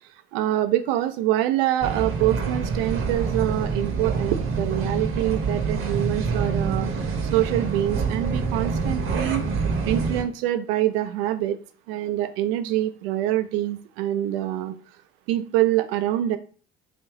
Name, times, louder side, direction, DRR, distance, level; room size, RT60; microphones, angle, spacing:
voice 1, 0.3-6.9 7.3-9.4 9.9-11.6 11.9-14.7 15.3-16.4, right 13 dB, 70° right, 9 dB, 0.5 m, -25 dB
sound 1, 1.8-10.2, right 4 dB, 45° right, 0.9 m, -26 dB
3.4 x 2.6 x 3.5 m, 0.41 s
hypercardioid pair, 60°, 30 cm